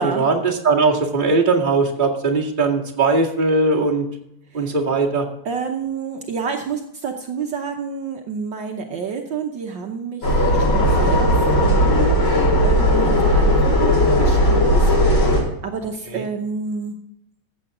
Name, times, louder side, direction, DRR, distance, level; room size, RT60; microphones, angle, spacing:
voice 1, 0.0-4.0 4.5-5.2 16.1-16.2, right 3 dB, 25° right, -3 dB, 2.1 m, -19 dB
voice 2, 5.4-11.3 11.6-12.1 12.6-17.0, right 5 dB, 65° right, 3 dB, 1.6 m, -29 dB
sound 1, 10.2-15.4, equal, 80° left, 5.2 m, -16 dB
14.5 x 8.1 x 3.7 m, 0.78 s
omnidirectional pair, 2.2 m